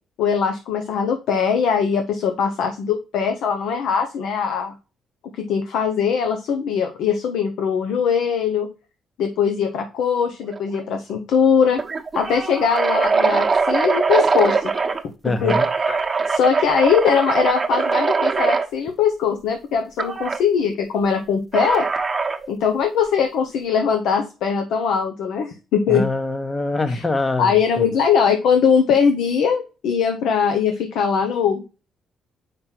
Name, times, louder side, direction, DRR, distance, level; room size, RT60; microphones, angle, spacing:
voice 1, 0.2-4.7 5.4-8.7 9.2-11.8 12.1-14.7 15.2-15.6 15.9-16.0 16.3-21.9 22.5-26.0 26.9-27.0 27.4-31.6, left 6 dB, 85° left, 0.8 m, -21 dB
sound 1, 10.5-10.8 11.1-11.2 11.7-15.0 15.5-18.7 20.0-20.4 21.5-22.5, right 4 dB, 30° right, 1.1 m, -21 dB
voice 2, 15.2-15.7 25.9-27.9, left 2 dB, 25° left, 1.0 m, -24 dB
5.8 x 5.2 x 4.5 m
cardioid pair, 90°, 0 cm